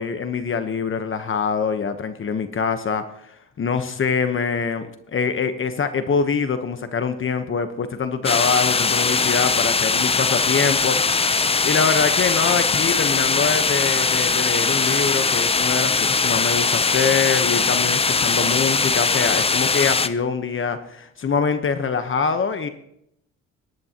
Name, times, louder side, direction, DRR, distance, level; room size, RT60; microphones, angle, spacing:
voice 1, 0.0-11.2 11.6-22.7, left 5 dB, 40° left, 8 dB, 1.1 m, -24 dB
sound 1, 8.2-20.1, left 4 dB, 20° left, 0.6 m, -20 dB
19.5 x 11.0 x 2.9 m, 0.75 s
cardioid pair, 90°, 30 cm